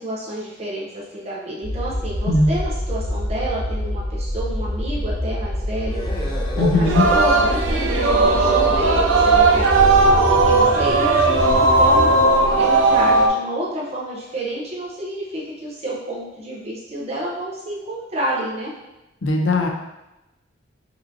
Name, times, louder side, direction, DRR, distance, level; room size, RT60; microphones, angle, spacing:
voice 1, 0.0-12.1 12.6-18.7, right 1 dB, 35° right, -5 dB, 0.7 m, -29 dB
sound 1, 1.6-12.2, equal, 35° left, 1.0 m, -27 dB
sound 2, 5.9-12.3, equal, 20° left, 0.7 m, -34 dB
voice 2, 6.6-7.0 19.2-19.7, left 2 dB, 75° left, 3 dB, 0.6 m, -18 dB
Singing, 6.8-13.3, right 3 dB, 85° right, 0.5 m, -16 dB
5.3 x 2.7 x 2.7 m, 0.97 s
head